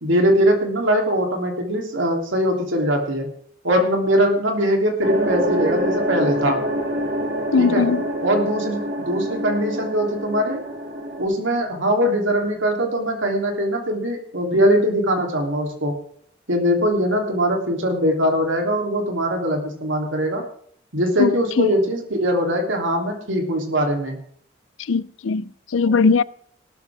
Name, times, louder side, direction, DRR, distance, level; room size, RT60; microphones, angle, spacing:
voice 1, 0.0-3.3 3.6-6.6 7.6-7.8 8.2-10.6 11.2-15.9 16.5-20.4 20.9-24.2, equal, 80° right, 3.2 m, -21 dB
sound 1, 5.0-11.2, right 1 dB, 50° right, 2.5 m, -26 dB
voice 2, 7.5-8.1 21.2-21.7 24.8-26.2, left 4 dB, 85° left, 0.5 m, -20 dB
18.0 x 12.5 x 3.6 m
head